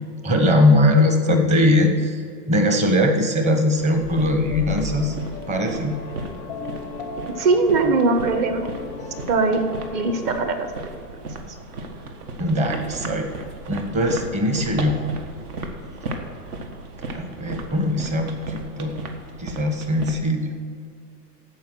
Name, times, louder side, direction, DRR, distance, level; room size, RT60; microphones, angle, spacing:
voice 1, 0.2-2.2 2.5-5.2 5.5-6.0 12.4-13.3 13.7-15.0 17.1-19.0 19.4-20.6, left 1 dB, 15° right, 5 dB, 1.0 m, -20 dB
sound 1, 3.8-20.2, right 2 dB, 70° right, 1.7 m, -35 dB
sound 2, 4.0-10.3, left 4 dB, 10° left, 0.4 m, -36 dB
voice 2, 7.3-8.7 9.3-9.7 9.9-10.9, right 3 dB, 35° right, 6 dB, 1.2 m, -20 dB
15.0 x 5.3 x 6.2 m, 2.2 s
hypercardioid pair, 145°, 47 cm